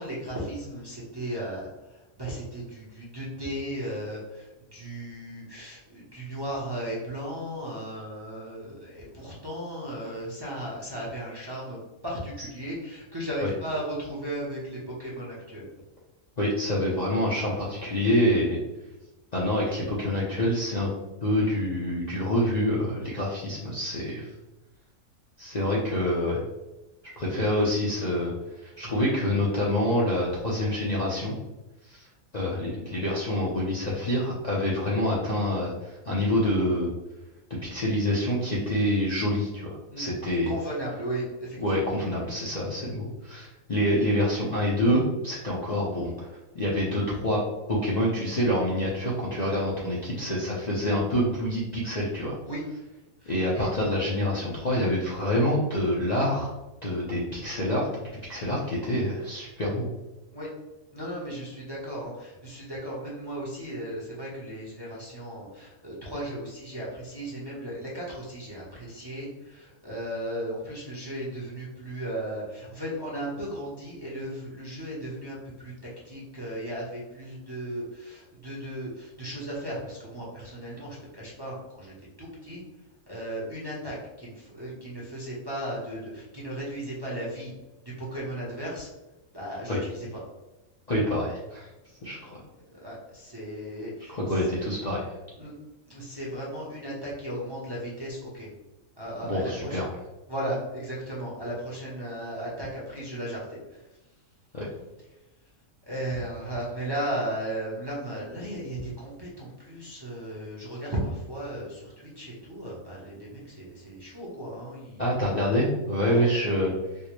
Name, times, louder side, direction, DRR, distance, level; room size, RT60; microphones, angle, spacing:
voice 1, 0.0-15.6 39.9-40.1 40.5-41.9 52.4-52.6 53.2-53.7 60.3-60.5 60.9-75.7 76.0-82.6 83.1-87.5 87.8-88.9 89.3-90.2 92.2-94.5 95.4-95.5 95.9-98.5 99.0-99.8 100.3-104.0 105.8-115.4 116.1-116.3, right 1 dB, 25° right, -5 dB, 0.6 m, -36 dB
voice 2, 16.4-18.6 19.3-20.9 21.2-24.3 25.4-26.4 27.2-28.3 28.6-31.3 31.9-32.1 32.3-36.9 37.5-40.5 41.6-46.3 46.5-47.4 47.7-52.4 53.3-56.5 56.8-59.8 89.7-89.8 90.9-91.7 92.0-92.4 94.1-95.0 99.3-99.9 104.5-104.7 115.0-116.7, left 1 dB, 45° left, -6 dB, 0.6 m, -26 dB
4.4 x 2.1 x 3.0 m, 1.0 s
omnidirectional pair, 1.4 m